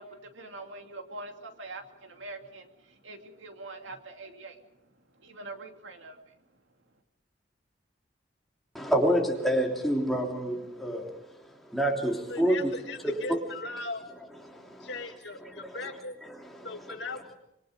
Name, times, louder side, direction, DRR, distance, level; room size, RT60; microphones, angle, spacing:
voice 1, 0.0-4.6 5.2-6.2, right 2 dB, 90° right, 2.6 m, -44 dB
voice 2, 8.7-12.7 13.3-13.4 14.4-14.9 15.4-15.7 16.3-17.0, right 1 dB, ahead, 3.3 m, -28 dB
voice 3, 12.2-14.0 14.8-16.2 16.6-17.3, left 3 dB, 70° left, 2.2 m, -39 dB
26.0 x 22.5 x 5.2 m
head